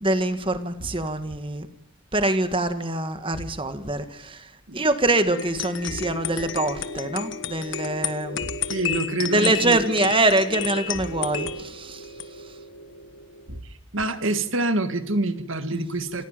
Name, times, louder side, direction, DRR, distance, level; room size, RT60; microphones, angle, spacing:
voice 1, 0.0-1.7 2.1-8.4 9.3-12.1 15.7-15.8, right 2 dB, 25° right, 9 dB, 1.8 m, -24 dB
sound 1, 0.8-1.4 3.3-3.9 5.9-6.4 8.4-9.0 10.9-11.5 13.5-14.1, right 1 dB, 80° right, 2.5 m, -39 dB
sound 2, 5.3-13.6, left 6 dB, 55° left, 1.4 m, -32 dB
voice 2, 8.7-9.8 13.9-16.2, right 2 dB, 65° right, 10 dB, 1.9 m, -26 dB
28.5 x 15.0 x 9.1 m, 0.83 s
head